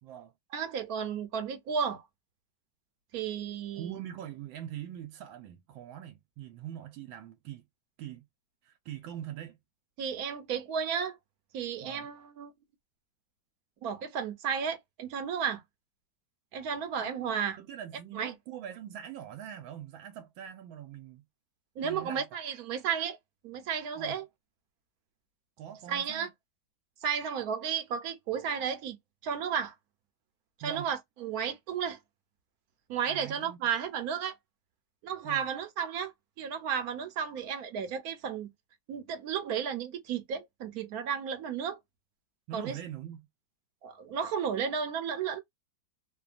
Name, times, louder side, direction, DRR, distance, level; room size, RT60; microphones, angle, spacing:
voice 1, 0.0-0.3 3.7-7.6 8.0-8.2 8.6-9.6 11.8-12.1 17.0-21.2 21.8-22.4 24.0-24.2 25.6-26.3 30.6-30.9 33.1-33.7 35.2-35.5 42.5-43.3, right 10 dB, 85° right, 1.3 m, -43 dB
voice 2, 0.5-2.0 3.1-4.0 10.0-11.2 11.5-12.5 13.8-15.6 16.5-17.6 18.1-18.3 21.8-23.2 23.4-24.2 25.9-26.3 27.0-29.0 29.2-29.7 30.6-32.0 32.9-34.3 35.0-36.1 36.4-38.5 38.9-41.8 42.5-42.8 43.8-45.4, right 7 dB, 65° right, 0.9 m, -33 dB
3.2 x 2.2 x 2.4 m
omnidirectional pair, 2.1 m